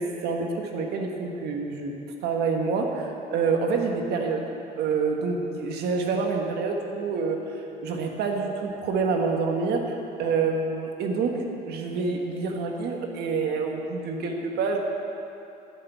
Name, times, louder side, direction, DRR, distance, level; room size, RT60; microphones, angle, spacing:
voice 1, 0.0-1.9 2.2-4.4 4.8-9.9 10.2-11.3 11.7-14.8, right 4 dB, 75° right, 2 dB, 1.6 m, -27 dB
12.0 x 6.7 x 8.3 m, 2.8 s
cardioid pair, 110°, 17 cm